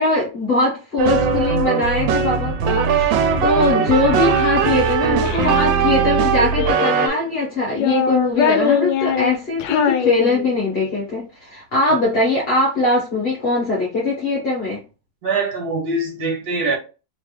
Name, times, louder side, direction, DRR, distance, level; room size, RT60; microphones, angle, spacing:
voice 1, 0.0-14.8, left 2 dB, 35° left, 1.3 m, -21 dB
sound 1, 1.0-7.1, right 6 dB, 80° right, 1.3 m, -19 dB
Child speech kid speaking, 3.9-5.6 6.4-7.2 7.7-10.8, left 7 dB, 75° left, 1.2 m, -23 dB
voice 2, 15.2-16.8, right 3 dB, 60° right, 1.3 m, -23 dB
3.3 x 3.3 x 3.2 m
omnidirectional pair, 2.1 m